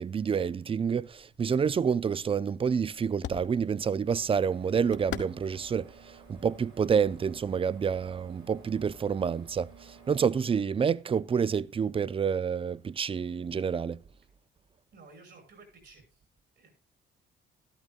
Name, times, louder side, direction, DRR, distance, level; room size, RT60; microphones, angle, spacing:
voice 1, 0.0-5.9 6.3-9.7 10.1-14.0, right 6 dB, 30° right, 0.4 m, -28 dB
sound 1, 1.1-7.4, left 8 dB, 65° left, 1.2 m, -46 dB
sound 2, 4.0-10.2, right 4 dB, 90° right, 5.2 m, -53 dB
voice 2, 14.9-16.2 16.6-16.7, right 3 dB, 65° right, 5.9 m, -55 dB
12.5 x 12.5 x 2.4 m
cardioid pair, 90°, 20 cm